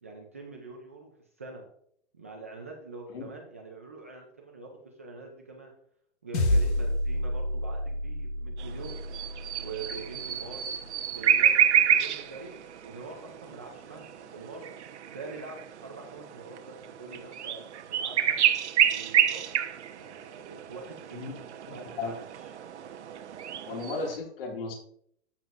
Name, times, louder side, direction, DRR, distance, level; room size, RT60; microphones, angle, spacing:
voice 1, 0.0-1.1 1.4-1.7 2.1-5.7 6.2-9.0 9.6-10.7 11.1-14.7 15.1-18.4 18.9-19.5 20.0-21.4 21.7-22.5, right 3 dB, 15° right, 0 dB, 0.4 m, -44 dB
sound 1, 6.3-10.9, left 1 dB, 75° left, 1.9 m, -30 dB
sound 2, 8.6-24.2, right 9 dB, 85° right, 1.0 m, -29 dB
voice 2, 23.7-24.7, left 4 dB, 55° left, 1 dB, 2.1 m, -34 dB
13.5 x 7.1 x 2.5 m, 0.66 s
hypercardioid pair, 175°, 33 cm